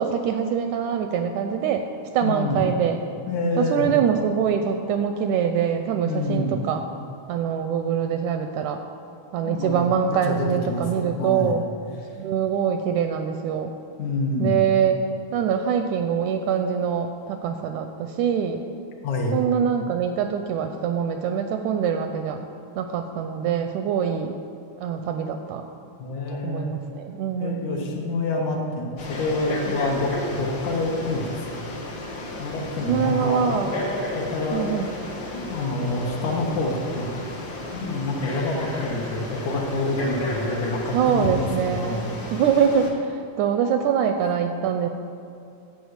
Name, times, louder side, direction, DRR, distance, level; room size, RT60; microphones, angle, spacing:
voice 1, 0.0-1.9 2.1-3.0 3.6-6.8 7.3-8.8 9.3-11.6 12.2-13.7 14.4-15.0 15.3-18.6 19.3-22.4 22.8-24.4 24.8-25.7 26.3-27.6 32.9-33.8 34.5-34.9 40.9-42.9 43.4-44.9, right 7 dB, 80° right, 6 dB, 1.8 m, -24 dB
voice 2, 2.2-2.6 3.3-3.9 6.1-6.5 9.4-11.6 14.0-14.6 19.0-19.4 26.0-26.8 27.4-31.7 32.4-33.7 34.1-34.8 35.3-37.1 37.4-42.1, left 2 dB, 70° left, 0 dB, 2.4 m, -27 dB
Frog, 29.0-42.9, left 1 dB, 55° left, 1.5 m, -33 dB
11.0 x 5.1 x 8.0 m, 2.6 s
omnidirectional pair, 3.8 m